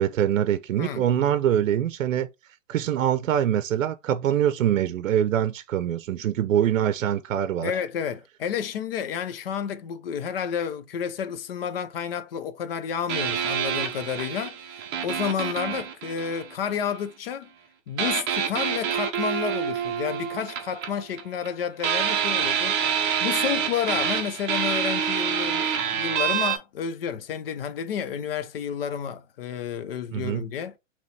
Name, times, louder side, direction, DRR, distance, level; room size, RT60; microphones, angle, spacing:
voice 1, 0.0-2.3 2.7-7.7 30.1-30.4, right 10 dB, 80° right, 0.6 m, -24 dB
voice 2, 7.6-17.5 17.9-30.8, left 8 dB, 50° left, 0.6 m, -31 dB
sound 1, 13.1-17.0 18.0-21.5 21.8-26.6, right 8 dB, 20° right, 0.8 m, -27 dB
4.1 x 3.0 x 3.2 m
hypercardioid pair, 155°, 39 cm